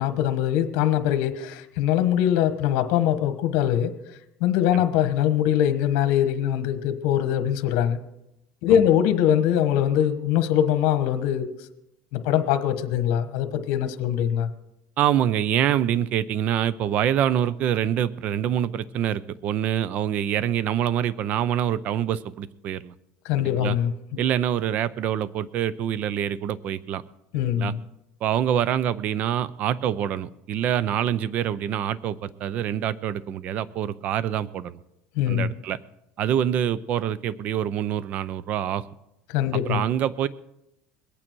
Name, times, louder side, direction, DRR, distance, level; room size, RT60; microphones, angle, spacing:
voice 1, 0.0-3.9 4.4-8.0 8.6-11.5 12.1-14.5 23.2-24.2 27.3-27.8 35.2-35.5 39.3-39.8, left 10 dB, 75° left, 10 dB, 1.1 m, -22 dB
voice 2, 15.0-22.9 23.4-23.8 24.2-27.0 27.4-27.7 28.2-34.8 35.3-35.8 36.2-38.8 39.7-40.3, right 10 dB, 50° right, 19 dB, 0.5 m, -25 dB
21.5 x 8.8 x 4.6 m, 0.88 s
cardioid pair, 140°, 3 cm